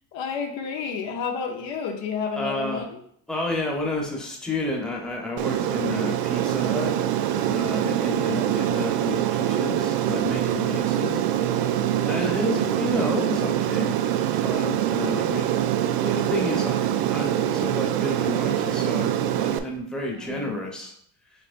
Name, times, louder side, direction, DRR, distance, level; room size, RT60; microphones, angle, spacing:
voice 1, 0.1-3.0 8.1-8.8 10.7-11.2 12.6-12.9 20.1-20.6, left 6 dB, 65° left, 3 dB, 1.0 m, -32 dB
voice 2, 2.3-2.9 3.3-6.9 7.4-11.3 12.0-13.9 14.4-16.8 17.0-20.9, left 1 dB, ahead, -2 dB, 0.9 m, -31 dB
Aircraft, 5.4-19.6, right 11 dB, 85° right, 0.5 m, -24 dB
6.6 x 2.9 x 2.5 m, 0.66 s
supercardioid pair, 95°, 48 cm